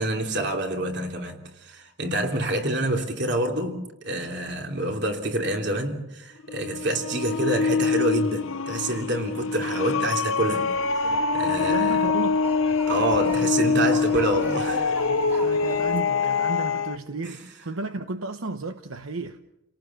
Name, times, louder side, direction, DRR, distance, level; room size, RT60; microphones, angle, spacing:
voice 1, 0.0-10.7 11.3-11.9 12.9-14.9 17.2-17.4, right 1 dB, 55° right, 3.1 m, -27 dB
sound 1, 6.4-17.0, left 4 dB, 75° left, 0.9 m, -24 dB
sound 2, 10.7-16.0, right 1 dB, 10° right, 2.3 m, -41 dB
voice 2, 11.6-12.5 14.4-19.4, right 3 dB, 80° right, 1.0 m, -34 dB
30.0 x 18.0 x 7.1 m
head